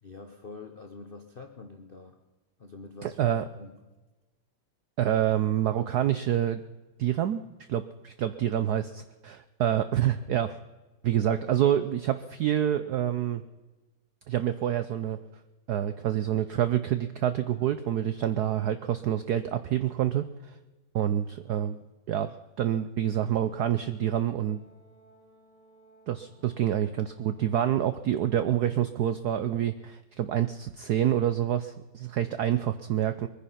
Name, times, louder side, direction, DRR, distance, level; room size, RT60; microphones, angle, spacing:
voice 1, 0.0-2.2 2.6-3.8, left 3 dB, 60° left, 6 dB, 0.5 m, -46 dB
voice 2, 3.0-3.4 5.0-6.6 7.0-7.4 7.7-10.6 11.0-13.4 14.3-15.2 15.7-20.6 20.9-21.8 22.1-24.6 26.1-33.3, right 11 dB, 80° right, 12 dB, 0.9 m, -27 dB
Brass instrument, 23.6-27.9, right 2 dB, 15° right, 3.7 m, -59 dB
21.5 x 10.0 x 5.7 m, 1.2 s
omnidirectional pair, 2.4 m